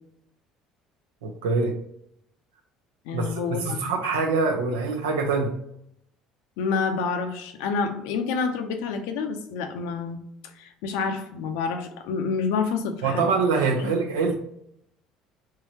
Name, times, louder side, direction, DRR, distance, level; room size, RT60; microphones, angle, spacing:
voice 1, 1.2-1.8 3.1-5.5 13.0-14.4, right 4 dB, 85° right, 3 dB, 0.7 m, -24 dB
voice 2, 3.1-3.9 6.6-10.2 10.6-13.3 13.8-14.3, left 5 dB, 75° left, 6 dB, 0.6 m, -28 dB
3.7 x 3.1 x 2.8 m, 0.74 s
hypercardioid pair, 70°, 0 cm